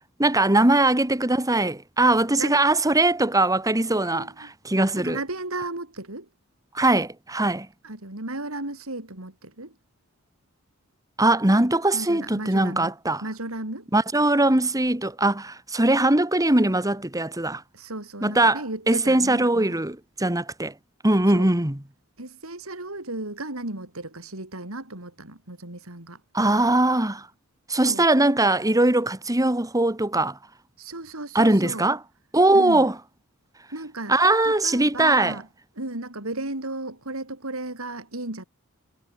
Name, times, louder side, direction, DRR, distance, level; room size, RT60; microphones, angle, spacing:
voice 1, 0.2-5.2 6.7-7.7 11.2-13.2 13.9-17.6 18.2-20.7 21.0-21.8 26.3-27.3 27.7-30.4 31.3-32.0 32.3-32.9 34.1-35.4, right 2 dB, 15° right, 2.1 m, -21 dB
voice 2, 4.1-4.5 5.0-6.3 7.8-9.7 11.9-12.9 13.2-13.9 17.7-19.8 21.3-21.5 22.2-26.2 27.7-28.1 30.8-31.9 32.5-32.9 33.7-34.1 34.4-35.5 35.8-38.4, right 2 dB, 70° right, 4.9 m, -35 dB
head